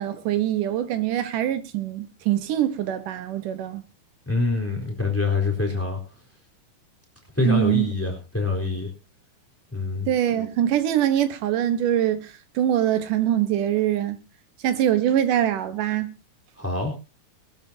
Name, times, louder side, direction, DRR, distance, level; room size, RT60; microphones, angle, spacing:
voice 1, 0.0-3.8 7.5-7.9 10.1-14.2 14.6-16.1, right 11 dB, 75° right, 2.7 m, -23 dB
voice 2, 4.3-6.0 7.4-8.9 9.7-10.1 16.6-16.9, left 3 dB, 5° left, 3.6 m, -25 dB
21.5 x 12.5 x 2.8 m
omnidirectional pair, 3.8 m